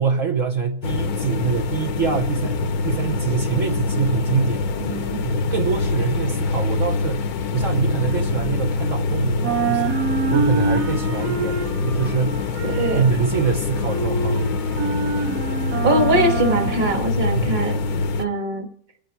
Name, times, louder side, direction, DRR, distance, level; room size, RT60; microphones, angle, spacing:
voice 1, 0.0-4.6 5.2-10.0 10.3-12.4 12.9-14.6 17.3-17.5, right 5 dB, 55° right, 1.4 m, -24 dB
sound 1, 0.8-18.3, left 3 dB, 70° left, 1.3 m, -24 dB
voice 2, 4.8-5.3 12.7-13.1 15.8-17.8 18.2-18.7, right 1 dB, 30° right, 1.8 m, -22 dB
sound 2, 6.4-9.0 9.3-17.5, right 4 dB, 80° right, 1.9 m, -27 dB
28.0 x 9.5 x 4.7 m
omnidirectional pair, 1.7 m